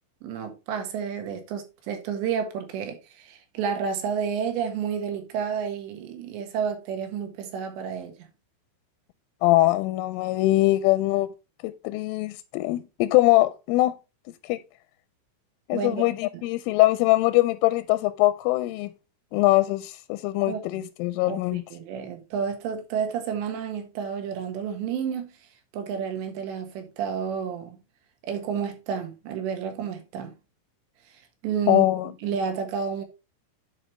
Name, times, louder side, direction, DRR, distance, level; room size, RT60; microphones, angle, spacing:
voice 1, 0.2-8.3 15.7-16.1 20.5-20.8 21.3-25.4 25.7-27.8 28.2-30.4 31.1-33.0, right 7 dB, 70° right, 3.5 m, -31 dB
voice 2, 9.4-11.3 11.6-14.0 14.4-14.6 15.7-18.9 19.3-21.6 31.7-32.1, left 18 dB, 90° left, 3.1 m, -22 dB
10.5 x 5.0 x 3.0 m
omnidirectional pair, 5.6 m